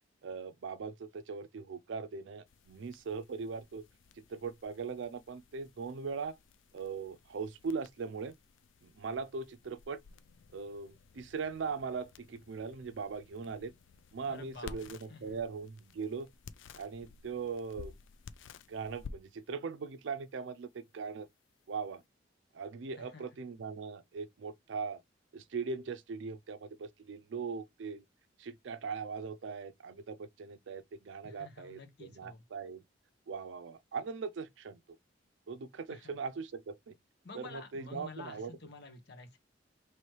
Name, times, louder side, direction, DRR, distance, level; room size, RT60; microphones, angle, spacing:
voice 1, 0.2-3.8 4.3-6.3 6.7-8.3 8.8-10.0 10.5-13.7 14.1-16.3 16.8-17.9 18.7-21.3 21.7-22.0 22.5-25.0 25.3-28.0 28.4-32.8 33.3-34.8 35.5-36.9 37.3-38.5, right 5 dB, 70° right, 0.4 m, -40 dB
Side B End, 2.5-22.1, left 4 dB, 75° left, 0.4 m, -55 dB
voice 2, 14.3-15.4 23.0-23.2 31.2-32.4 35.9-36.1 37.2-39.4, left 3 dB, 60° left, 1.1 m, -50 dB
3.1 x 3.0 x 4.6 m
head